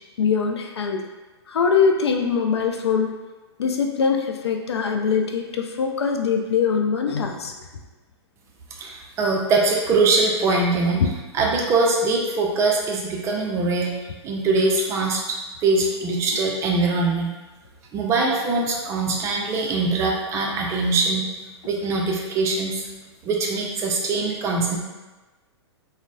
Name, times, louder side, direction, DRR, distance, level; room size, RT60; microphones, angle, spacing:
voice 1, 0.2-1.0 1.5-3.1 3.6-7.5, left 6 dB, 65° left, 3 dB, 0.4 m, -22 dB
voice 2, 8.8-11.0 11.3-13.9 14.2-15.2 15.6-17.3 17.9-21.2 21.6-22.9 23.2-24.8, right 3 dB, 20° right, -1 dB, 0.4 m, -22 dB
3.9 x 2.0 x 2.3 m, 1.2 s
figure-of-eight pair, 110°, 15 cm